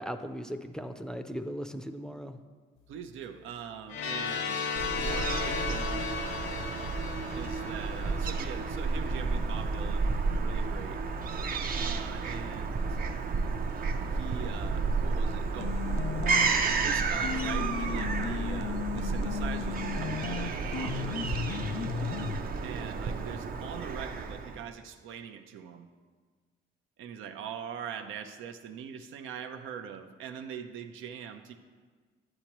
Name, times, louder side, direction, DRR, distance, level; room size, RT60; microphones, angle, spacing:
voice 1, 0.0-2.4, equal, 5° left, 6 dB, 0.5 m, -38 dB
voice 2, 2.9-4.6 4.9-6.5 7.3-11.0 11.7-13.0 14.1-15.8 16.8-21.7 22.6-25.9 27.0-31.5, right 8 dB, 85° right, 7 dB, 0.7 m, -42 dB
sound 1, 3.9-8.7, left 6 dB, 80° left, 0.8 m, -35 dB
Fowl / Gull seagull, 4.8-24.6, right 4 dB, 50° right, 0.6 m, -31 dB
sound 2, 15.6-16.7 17.2-22.4, left 8 dB, 60° left, 0.4 m, -35 dB
9.7 x 8.9 x 3.0 m, 1.5 s
cardioid pair, 90°, 20 cm